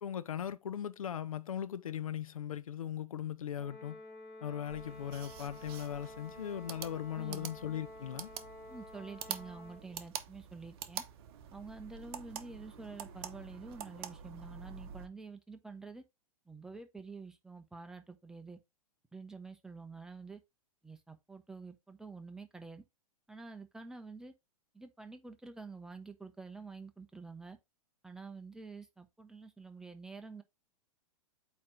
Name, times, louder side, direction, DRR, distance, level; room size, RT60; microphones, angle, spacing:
voice 1, 0.0-4.0 4.4-8.3, left 9 dB, 70° left, 0.7 m, -39 dB
Brass instrument, 3.6-9.9, left 2 dB, 15° left, 3.5 m, -51 dB
sound 1, 4.7-15.1, right 9 dB, 45° right, 0.9 m, -47 dB
voice 2, 7.1-7.5 8.7-11.0 11.5-16.0 16.5-18.6 19.1-20.4 20.8-22.8 23.3-24.3 24.7-27.6 28.0-30.4, right 4 dB, 5° right, 0.8 m, -48 dB
8.5 x 3.1 x 3.8 m
figure-of-eight pair, 105°, 18 cm